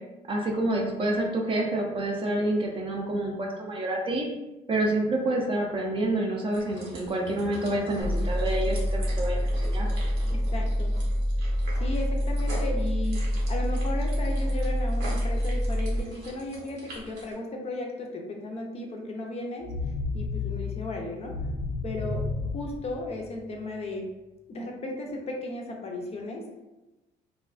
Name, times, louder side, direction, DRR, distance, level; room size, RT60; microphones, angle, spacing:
voice 1, 0.3-4.3 4.7-9.9, right 1 dB, 30° right, 0 dB, 0.4 m, -28 dB
sound 1, 6.5-17.4, right 2 dB, 90° right, 0.8 m, -43 dB
sound 2, 8.0-16.0, equal, 85° left, 0.7 m, -26 dB
voice 2, 10.3-11.0 11.8-19.7 20.1-21.4 21.8-22.2 22.5-24.1 24.5-26.4, left 2 dB, 40° left, 1 dB, 0.4 m, -35 dB
sound 3, 19.6-23.6, left 3 dB, 10° right, 0.8 m, -33 dB
2.4 x 2.2 x 2.4 m, 1.0 s
cardioid pair, 110°, 17 cm